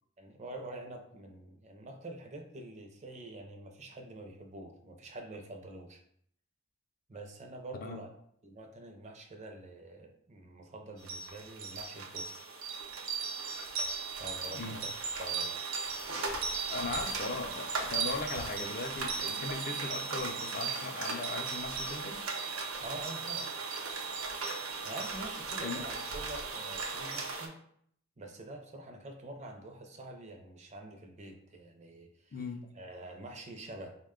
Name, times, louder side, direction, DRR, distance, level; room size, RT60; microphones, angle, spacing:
voice 1, 0.2-6.0 7.1-8.1 8.4-12.4 14.1-14.9 15.2-15.6 22.8-23.5 24.8-27.6 28.2-32.4 32.7-33.9, right 1 dB, 35° right, 3 dB, 0.5 m, -46 dB
sound 1, 11.1-27.5, right 4 dB, 80° right, 0.6 m, -37 dB
voice 2, 16.7-22.2 25.6-25.9 32.3-32.7, left 3 dB, 45° left, 5 dB, 0.4 m, -38 dB
3.9 x 2.2 x 3.6 m, 0.67 s
head